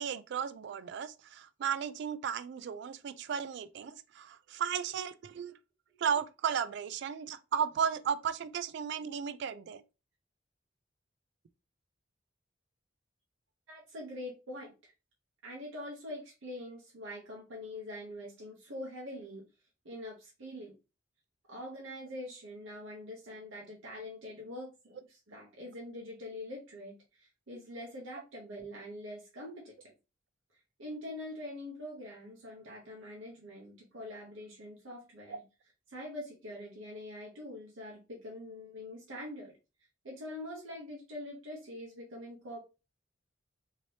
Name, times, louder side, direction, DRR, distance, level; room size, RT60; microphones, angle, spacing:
voice 1, 0.0-5.5 6.0-9.8 35.3-35.4, right 7 dB, 60° right, 0.3 m, -35 dB
voice 2, 13.7-14.9 15.4-19.4 19.8-20.7 21.5-29.9 30.8-35.4 35.9-39.6 40.0-42.6, left 1 dB, 90° right, 0.8 m, -44 dB
2.8 x 2.8 x 3.1 m
head